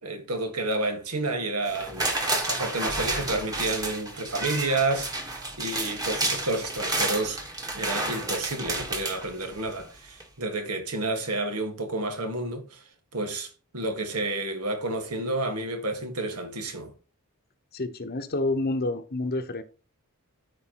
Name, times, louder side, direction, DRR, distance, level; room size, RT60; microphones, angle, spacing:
voice 1, 0.0-2.1 2.5-7.4 7.7-12.8 13.1-16.9, right 2 dB, 85° right, 1.8 m, -30 dB
sound 1, 1.7-9.8 10.2-10.3, right 2 dB, 15° right, 1.4 m, -31 dB
voice 2, 17.7-19.6, left 2 dB, 45° left, 0.9 m, -28 dB
14.0 x 4.6 x 3.0 m
head